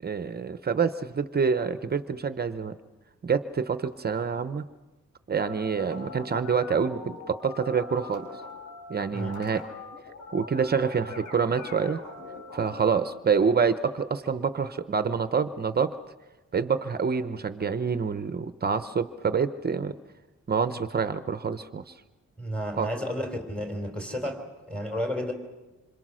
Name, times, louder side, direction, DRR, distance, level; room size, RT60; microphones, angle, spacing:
voice 1, 0.0-2.8 3.2-4.6 5.3-8.3 8.9-9.6 10.3-12.0 12.5-16.0 16.5-19.9 20.5-21.9 22.8-22.9, right 6 dB, 35° right, 11 dB, 0.8 m, -27 dB
sound 1, 5.4-13.0, left 3 dB, 85° left, 6.1 m, -42 dB
voice 2, 22.4-25.3, equal, 5° left, 3 dB, 3.7 m, -32 dB
27.0 x 26.0 x 6.3 m, 1.1 s
wide cardioid pair, 160°, 29 cm